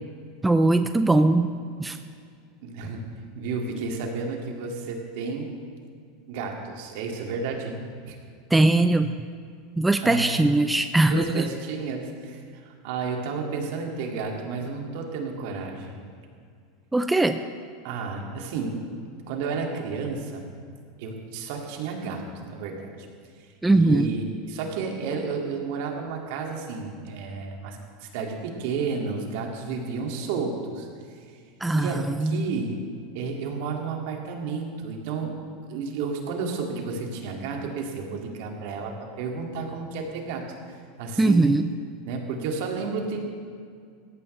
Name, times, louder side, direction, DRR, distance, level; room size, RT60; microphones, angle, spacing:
voice 1, 0.4-1.5 1.8-2.0 8.5-9.1 9.8-11.5 16.9-17.4 23.6-24.1 31.6-32.5 41.2-41.7, right 2 dB, 10° right, 9 dB, 0.5 m, -20 dB
voice 2, 2.6-3.0 3.3-5.5 6.3-7.8 8.1-8.2 10.0-10.4 11.1-15.9 17.8-18.8 19.3-20.5 21.0-23.0 23.7-30.9 31.7-32.8 33.1-35.4 35.7-41.5 42.0-43.3, right 4 dB, 65° right, 1 dB, 2.3 m, -32 dB
17.5 x 14.0 x 3.3 m, 2.2 s
hypercardioid pair, 105°, 0 cm